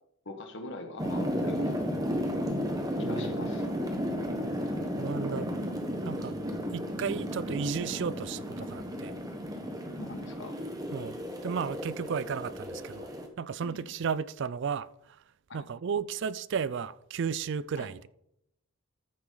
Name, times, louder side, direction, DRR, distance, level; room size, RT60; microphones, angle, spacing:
voice 1, 0.2-1.8 3.0-3.7 8.6-8.7 10.0-10.5 13.6-13.9 15.5-15.6 17.8-17.9, left 2 dB, 55° left, 1.4 m, -43 dB
sound 1, 1.0-13.3, equal, 15° right, 1.0 m, -33 dB
voice 2, 5.0-5.5 6.0-6.3 6.7-9.2 10.9-13.1 13.4-15.2 15.5-18.1, right 6 dB, 55° right, 0.3 m, -34 dB
14.0 x 7.0 x 3.9 m
head